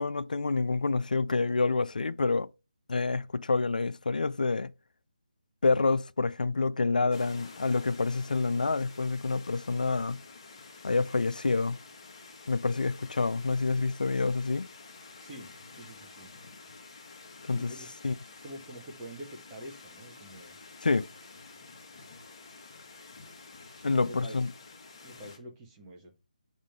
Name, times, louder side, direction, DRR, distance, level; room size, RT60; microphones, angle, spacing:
voice 1, 0.0-2.5 2.9-4.7 5.6-10.2 10.8-11.8 12.5-14.7 17.5-17.7 18.0-18.1 20.8-21.1 23.8-24.5, left 3 dB, 80° left, 0.4 m, -28 dB
sound 1, 7.1-25.4, left 4 dB, 35° left, 1.4 m, -50 dB
voice 2, 15.8-16.3 17.5-17.9 18.4-20.5 23.7-24.4 25.0-26.1, right 1 dB, 20° right, 1.4 m, -46 dB
7.3 x 3.6 x 3.5 m
figure-of-eight pair, 160°, 4 cm